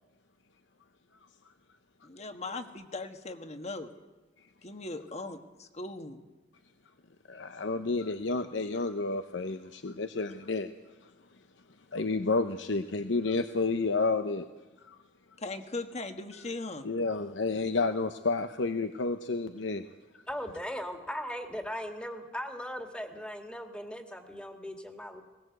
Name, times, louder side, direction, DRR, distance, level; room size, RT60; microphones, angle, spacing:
voice 1, 2.0-3.9 4.6-6.2 15.4-16.9, left 2 dB, 35° left, 7 dB, 1.5 m, -39 dB
voice 2, 7.3-10.7 11.9-14.4 14.8-15.0 16.8-19.8, left 3 dB, 70° left, 8 dB, 0.9 m, -30 dB
voice 3, 20.3-25.2, equal, 5° left, 5 dB, 2.0 m, -38 dB
21.0 x 19.5 x 8.0 m, 1.1 s
head